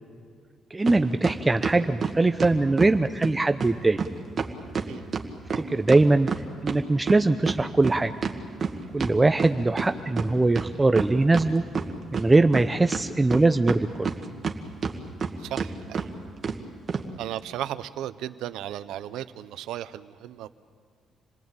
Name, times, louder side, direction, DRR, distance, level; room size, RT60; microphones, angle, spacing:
voice 1, 0.7-4.0 5.6-6.3 6.6-8.1 8.9-11.6 12.1-14.1, right 2 dB, 20° right, 8 dB, 0.7 m, -21 dB
sound 1, 0.9-1.0 1.2-2.9 3.2-3.3 3.6-3.7 4.0-4.1 4.4-6.8 7.1-9.9 10.2-10.3 10.5-11.5 11.7-12.6 12.9-14.5 14.8-15.3 15.6-15.7 15.9-16.1 16.4-16.6 16.9-17.0, right 5 dB, 45° right, 1.9 m, -28 dB
voice 2, 4.9-5.2 15.4-16.1 17.2-20.5, right 12 dB, 90° right, 13 dB, 0.8 m, -35 dB
28.0 x 19.0 x 8.9 m, 2.1 s
cardioid pair, 90°, 0 cm